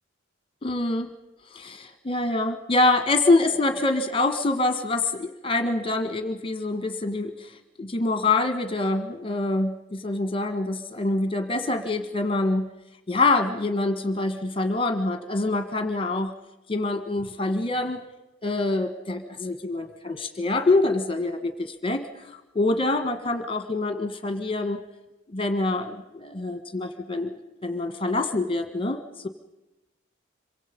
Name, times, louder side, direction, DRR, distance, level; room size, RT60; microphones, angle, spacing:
voice 1, 0.6-1.1 1.5-12.7 13.1-16.3 16.7-18.1 18.4-24.8 25.3-29.3, left 2 dB, 25° left, 8 dB, 1.6 m, -25 dB
27.0 x 24.0 x 5.4 m, 0.98 s
head